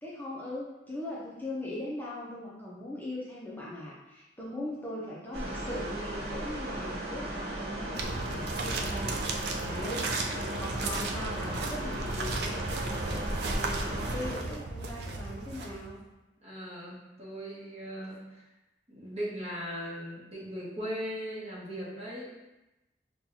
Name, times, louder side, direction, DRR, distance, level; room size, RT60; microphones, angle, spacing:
voice 1, 0.0-12.6 12.8-16.0, left 1 dB, 10° left, -6 dB, 0.5 m, -40 dB
sound 1, 5.3-14.3, right 1 dB, 85° right, 1.1 m, -36 dB
sound 2, 7.9-16.1, right 3 dB, 65° right, 0.4 m, -35 dB
voice 2, 16.4-18.4 18.9-22.3, equal, 35° right, -6 dB, 1.1 m, -39 dB
5.6 x 2.3 x 2.7 m, 0.99 s
head